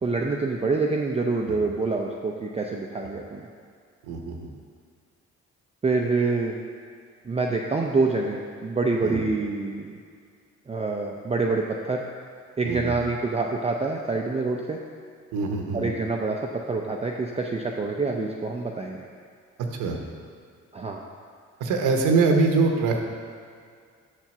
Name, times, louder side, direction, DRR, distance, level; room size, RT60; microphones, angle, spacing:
voice 1, 0.0-3.5 5.8-6.6 7.3-10.0 10.7-12.1 12.6-14.8 15.7-19.1 20.7-21.0, right 3 dB, 20° right, 0 dB, 0.5 m, -26 dB
voice 2, 4.0-4.5 9.0-9.2 12.6-12.9 15.3-15.9 19.7-20.0 21.6-23.0, right 4 dB, 85° right, 3 dB, 0.9 m, -23 dB
6.8 x 4.4 x 6.0 m, 2.1 s
cardioid pair, 90°, 30 cm